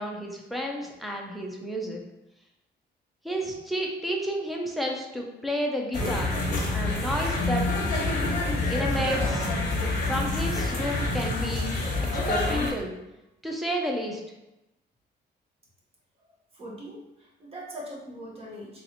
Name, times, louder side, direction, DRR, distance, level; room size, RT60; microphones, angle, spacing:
voice 1, 0.0-2.0 3.2-6.4 6.7-7.6 8.7-9.5 10.1-11.7 12.1-12.9 13.4-14.2, equal, ahead, 0 dB, 0.5 m, -31 dB
sound 1, 5.9-12.7, left 2 dB, 45° left, 1.2 m, -27 dB
voice 2, 16.5-18.8, equal, 30° right, -3 dB, 1.0 m, -41 dB
4.1 x 3.1 x 2.8 m, 0.95 s
cardioid pair, 170°, 19 cm